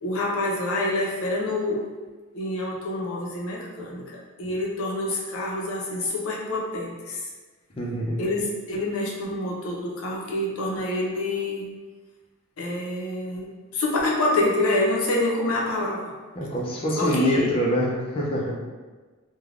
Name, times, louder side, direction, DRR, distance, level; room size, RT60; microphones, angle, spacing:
voice 1, 0.0-1.9 2.3-4.1 4.4-7.2 8.2-11.7 12.6-16.0 17.0-17.6, left 1 dB, 75° left, -2 dB, 0.6 m, -27 dB
voice 2, 7.8-8.1 16.3-18.5, equal, 25° left, -4 dB, 0.4 m, -25 dB
3.2 x 2.2 x 2.4 m, 1.3 s
head